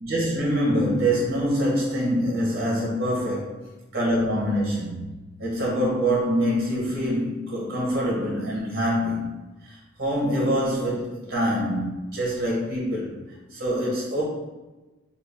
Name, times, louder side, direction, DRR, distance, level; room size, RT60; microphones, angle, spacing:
voice 1, 0.0-3.5 3.9-4.8 5.4-9.4 9.6-13.1 13.5-14.2, equal, 50° right, -4 dB, 1.1 m, -25 dB
3.5 x 2.4 x 3.5 m, 1.1 s
head